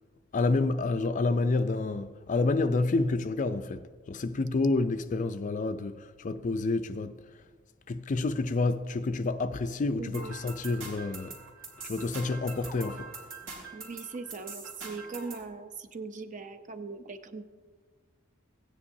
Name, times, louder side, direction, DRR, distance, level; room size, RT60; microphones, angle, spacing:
voice 1, 0.3-7.4 7.9-11.4 11.8-13.1, left 3 dB, 40° left, 0.4 m, -29 dB
voice 2, 10.0-10.3 13.7-17.4, right 4 dB, 40° right, 0.6 m, -40 dB
sound 1, 10.1-15.5, right 4 dB, 80° right, 3.1 m, -43 dB
16.5 x 9.8 x 2.7 m
head